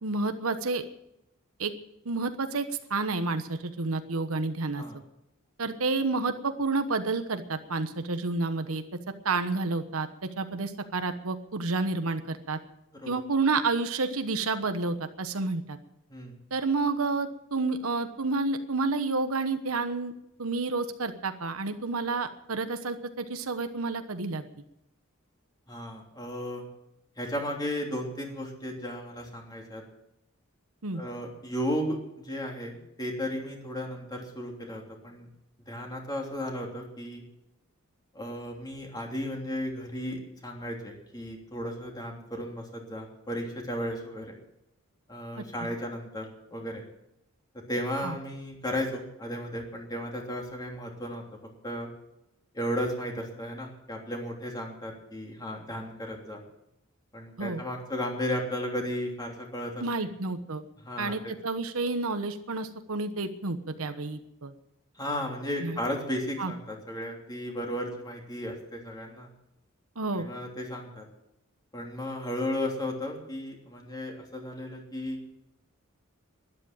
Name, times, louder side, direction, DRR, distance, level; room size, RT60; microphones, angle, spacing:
voice 1, 0.0-0.8 1.6-1.7 2.0-4.8 5.6-8.8 9.2-10.1 10.4-12.6 13.1-15.8 16.5-20.1 20.4-24.4 30.8-31.0 45.4-45.5 48.0-48.2 57.4-57.6 59.8-60.6 61.0-64.5 65.6-65.8 66.4-66.5 70.0-70.3, right 3 dB, 75° right, 9 dB, 1.2 m, -30 dB
voice 2, 25.7-26.7 27.2-29.8 30.9-35.3 35.7-37.2 38.1-44.3 45.1-46.8 47.7-51.2 51.6-51.9 52.5-56.4 57.1-59.8 60.8-61.2 65.0-69.3 70.2-71.0 71.7-75.2, equal, 20° left, 1 dB, 3.1 m, -34 dB
12.5 x 11.0 x 8.8 m, 0.83 s
head